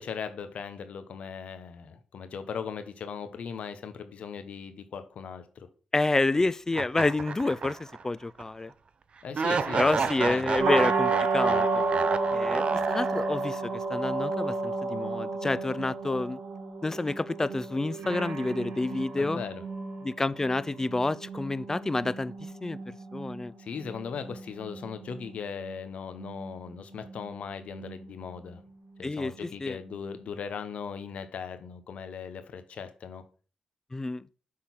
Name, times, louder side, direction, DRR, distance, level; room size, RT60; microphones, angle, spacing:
voice 1, 0.0-5.7 9.2-10.5 19.2-19.6 23.6-28.6 29.0-33.2, left 6 dB, 70° left, 0.9 m, -38 dB
voice 2, 5.9-8.7 9.8-11.8 12.3-16.4 16.8-19.4 20.0-22.8 23.1-23.5 29.0-29.8 33.9-34.3, left 2 dB, 25° left, 0.3 m, -29 dB
sound 1, 6.7-8.0 8.4-8.5 9.3-13.6, right 5 dB, 55° right, 0.5 m, -31 dB
sound 2, 10.6-30.4, right 3 dB, 85° right, 1.4 m, -33 dB
6.4 x 3.8 x 5.8 m
cardioid pair, 65°, 2 cm